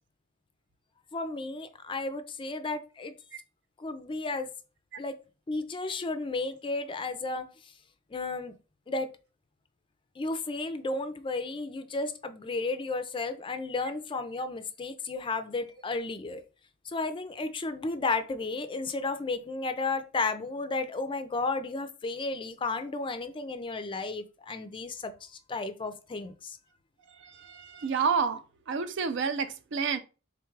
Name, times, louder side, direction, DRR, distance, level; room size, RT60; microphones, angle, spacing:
voice 1, 1.1-3.1 3.8-4.5 5.0-5.2 5.5-7.7 8.1-8.5 8.9-9.1 10.2-16.4 16.9-26.6, left 3 dB, 25° left, 0.4 m, -33 dB
voice 2, 27.2-28.4 28.7-30.0, right 5 dB, 60° right, 0.4 m, -29 dB
3.5 x 2.4 x 4.5 m
head